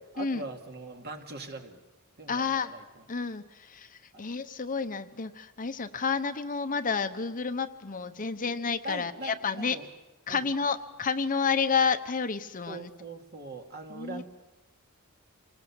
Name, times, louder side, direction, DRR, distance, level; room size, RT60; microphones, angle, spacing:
voice 1, 0.0-1.8 2.2-3.0 4.1-4.3 8.8-9.9 10.3-10.5 12.7-14.2, right 2 dB, 50° right, 4 dB, 2.3 m, -41 dB
voice 2, 2.3-2.7 3.1-9.8 10.3-12.9 13.9-14.2, left 5 dB, 40° left, 9 dB, 0.9 m, -30 dB
26.5 x 19.5 x 7.2 m, 1.0 s
head